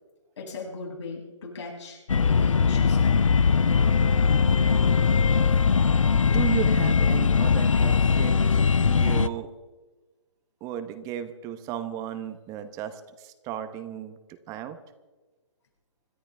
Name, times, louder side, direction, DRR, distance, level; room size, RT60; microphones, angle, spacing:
voice 1, 0.4-3.4, left 3 dB, 65° left, -2 dB, 6.4 m, -38 dB
sound 1, 2.1-9.3, left 5 dB, 90° left, 0.6 m, -21 dB
voice 2, 6.1-9.5 10.6-14.8, right 11 dB, 20° right, 9 dB, 1.1 m, -35 dB
26.0 x 13.0 x 3.6 m, 1.2 s
hypercardioid pair, 140°, 16 cm